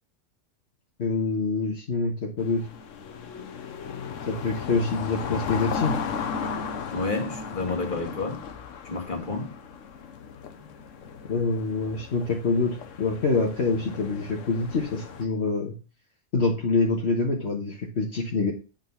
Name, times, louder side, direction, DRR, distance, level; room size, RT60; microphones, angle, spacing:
voice 1, 1.0-2.7 4.3-6.0 11.3-15.8 16.3-18.5, left 3 dB, 60° left, 1.5 m, -26 dB
sound 1, 2.4-15.2, left 6 dB, 85° left, 1.2 m, -36 dB
voice 2, 6.9-8.4 8.8-9.6, left 3 dB, 40° left, 2.1 m, -30 dB
8.9 x 4.0 x 5.7 m
omnidirectional pair, 1.3 m